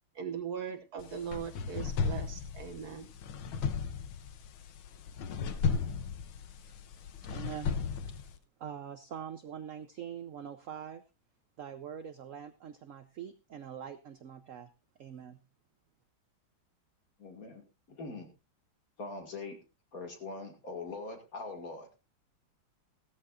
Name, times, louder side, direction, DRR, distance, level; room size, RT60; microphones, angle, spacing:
voice 1, 0.1-3.1, right 7 dB, 55° right, 6 dB, 1.5 m, -39 dB
sound 1, 1.0-8.4, left 6 dB, 90° left, 1.8 m, -35 dB
voice 2, 7.2-7.7 8.1-8.2 8.6-11.0 11.6-14.7 15.0-15.4, right 8 dB, 70° right, 10 dB, 0.7 m, -44 dB
voice 3, 17.2-18.3 19.0-19.6 19.9-22.0, left 3 dB, 45° left, 4 dB, 2.4 m, -42 dB
16.0 x 14.0 x 2.5 m, 0.28 s
omnidirectional pair, 2.2 m